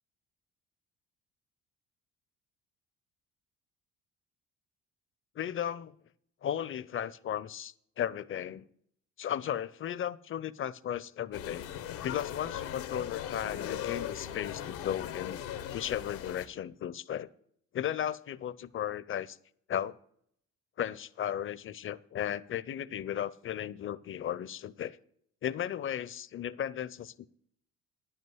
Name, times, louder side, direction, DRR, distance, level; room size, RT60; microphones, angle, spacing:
voice 1, 5.4-5.9 6.4-8.7 9.2-11.7 12.0-15.4 15.7-17.3 17.7-19.4 19.7-20.0 20.8-25.0 25.4-27.3, left 10 dB, 40° left, 20 dB, 0.5 m, -35 dB
sound 1, 11.3-16.5, left 10 dB, 80° left, 0.9 m, -39 dB
10.5 x 5.6 x 7.9 m, 0.67 s
supercardioid pair, 65°, 34 cm